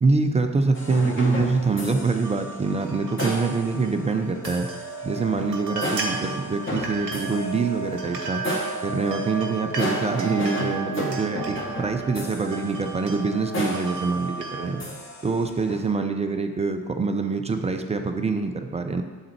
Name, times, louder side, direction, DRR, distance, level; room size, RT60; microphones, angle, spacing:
voice 1, 0.0-4.7 5.0-8.4 8.8-14.8 15.2-19.0, right 4 dB, 15° right, 6 dB, 0.3 m, -25 dB
sound 1, 0.7-15.9, equal, 25° left, 1.3 m, -34 dB
sound 2, 2.2-14.7, right 3 dB, 90° right, 0.7 m, -34 dB
7.1 x 3.7 x 4.4 m, 1.4 s
figure-of-eight pair, 45°, 48 cm